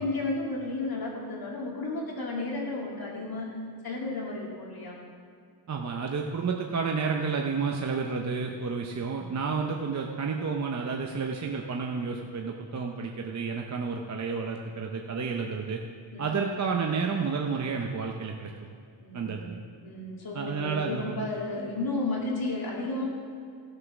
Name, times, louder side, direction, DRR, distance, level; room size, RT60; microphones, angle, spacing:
voice 1, 0.0-3.5 3.8-5.0 16.1-16.5 19.0-23.1, left 2 dB, 50° left, -2 dB, 2.5 m, -33 dB
voice 2, 5.7-15.8 16.2-18.5 19.1-19.6 20.3-21.2, right 5 dB, 35° right, 1 dB, 0.7 m, -31 dB
15.5 x 6.6 x 6.0 m, 2.3 s
wide cardioid pair, 155°, 45 cm